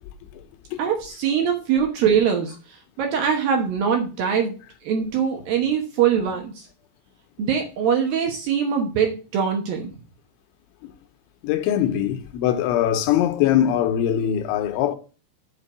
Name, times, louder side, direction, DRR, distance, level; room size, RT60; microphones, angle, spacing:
voice 1, 0.8-4.6 4.8-6.7 7.4-9.9, right 7 dB, 80° right, 2.0 m, -23 dB
voice 2, 11.4-15.0, left 10 dB, 80° left, 2.9 m, -21 dB
8.2 x 4.6 x 6.7 m
omnidirectional pair, 5.9 m